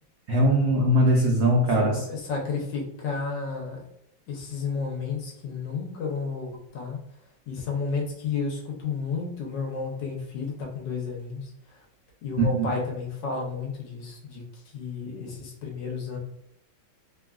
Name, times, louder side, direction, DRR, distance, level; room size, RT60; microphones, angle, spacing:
voice 1, 0.3-2.0 12.4-12.7, right 1 dB, 80° right, -3 dB, 0.8 m, -21 dB
voice 2, 1.8-3.8 4.3-7.0 7.5-11.5 12.2-14.4 14.7-16.2, left 4 dB, 70° left, 0 dB, 1.3 m, -32 dB
3.4 x 2.4 x 2.2 m, 0.76 s
omnidirectional pair, 2.3 m